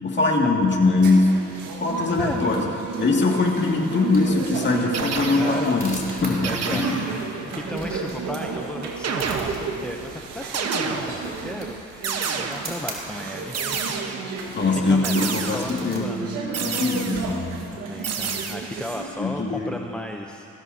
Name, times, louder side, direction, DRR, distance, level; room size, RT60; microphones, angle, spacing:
voice 1, 0.0-1.5 1.8-2.7 3.0-7.0 14.5-16.1 16.6-17.6 19.2-19.8, left 3 dB, 35° left, -1 dB, 2.2 m, -22 dB
sound 1, 1.0-19.1, right 4 dB, 85° right, 1.7 m, -33 dB
sound 2, 1.6-17.2, right 2 dB, 30° right, 3.0 m, -44 dB
sound 3, 4.9-5.7 6.4-7.2 9.0-9.9 10.5-11.4 12.0-12.9 13.5-14.4 15.0-15.9 16.5-17.4 18.0-18.5, right 6 dB, 55° right, 1.2 m, -29 dB
voice 2, 5.3-5.7 6.1-6.9 7.4-14.1 14.7-16.3 17.7-20.5, left 1 dB, 5° left, 2 dB, 0.6 m, -35 dB
20.0 x 15.5 x 2.8 m, 2.6 s
cardioid pair, 90°, 30 cm